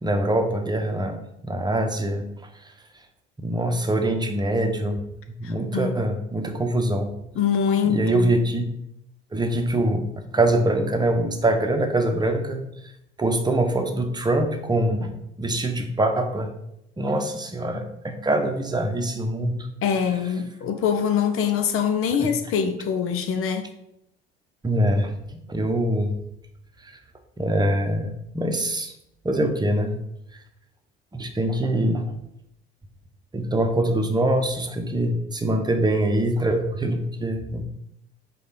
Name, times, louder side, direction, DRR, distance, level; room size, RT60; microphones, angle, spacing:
voice 1, 0.0-2.2 3.4-5.0 5.4-7.1 7.9-8.7 9.3-12.6 13.2-15.1 15.4-16.5 17.0-19.7 24.6-26.2 26.8-26.9 27.4-28.9 29.2-29.9 31.1-32.0 33.3-37.6, right 1 dB, 15° right, 5 dB, 1.1 m, -24 dB
voice 2, 5.4-6.0 7.3-8.3 19.8-23.7, left 7 dB, 45° left, 8 dB, 1.0 m, -24 dB
5.3 x 3.9 x 5.8 m, 0.81 s
figure-of-eight pair, 60°, 30 cm